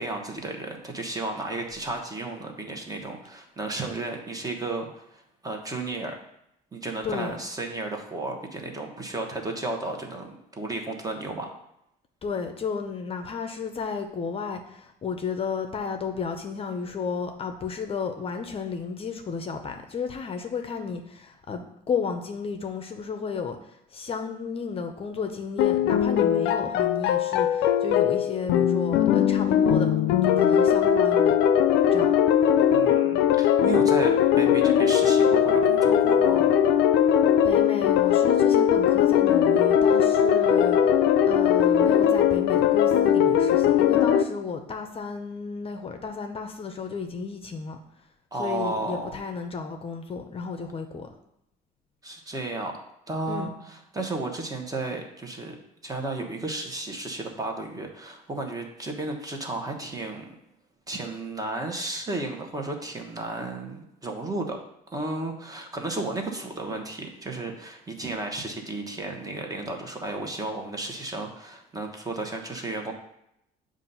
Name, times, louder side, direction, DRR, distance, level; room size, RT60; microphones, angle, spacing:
voice 1, 0.0-6.1 6.7-11.5 32.7-36.5 48.3-49.2 52.0-52.7 53.1-55.6 55.8-60.3 60.9-64.6 64.9-72.9, right 2 dB, 20° right, 2 dB, 1.0 m, -33 dB
voice 2, 7.0-7.4 12.2-29.9 30.2-31.4 31.9-32.1 37.4-41.0 41.2-47.8 48.4-51.1 53.3-53.5, left 5 dB, 35° left, 6 dB, 0.6 m, -33 dB
sound 1, 25.6-44.2, left 9 dB, 85° left, 0.4 m, -20 dB
7.3 x 2.5 x 5.4 m, 0.79 s
cardioid pair, 110°, 17 cm